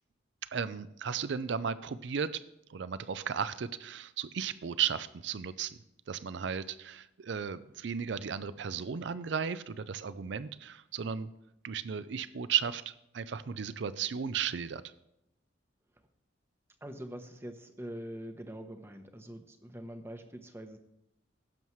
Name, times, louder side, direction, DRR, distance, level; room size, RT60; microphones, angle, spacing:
voice 1, 0.5-2.4 2.7-5.8 6.1-11.3 11.6-14.8, right 7 dB, 65° right, 15 dB, 0.4 m, -35 dB
voice 2, 16.8-20.8, right 1 dB, 10° right, 7 dB, 0.8 m, -44 dB
16.5 x 7.2 x 3.1 m, 0.84 s
head